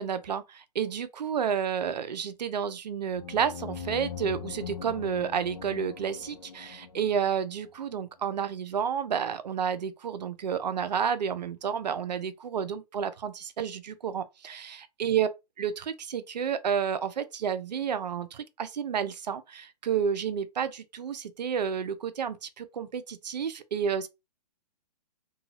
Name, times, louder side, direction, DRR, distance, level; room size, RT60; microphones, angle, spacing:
voice 1, 0.0-15.3 15.6-24.1, right 7 dB, 80° right, 0.5 m, -30 dB
sound 1, 3.1-7.7, left 7 dB, 75° left, 0.7 m, -41 dB
2.6 x 2.3 x 2.9 m
hypercardioid pair, 140°, 21 cm